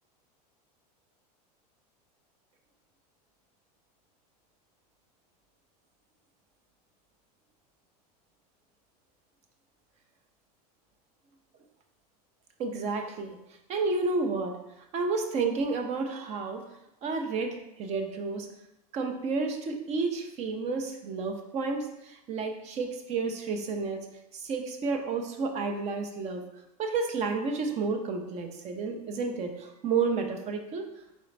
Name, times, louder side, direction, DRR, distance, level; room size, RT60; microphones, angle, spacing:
voice 1, 12.6-13.4 13.7-14.6 14.9-16.7 17.0-18.5 18.9-24.1 24.3-26.5 26.8-30.9, right 4 dB, 35° right, 5 dB, 0.6 m, -31 dB
4.2 x 3.7 x 3.2 m, 0.86 s
supercardioid pair, 135°, 20 cm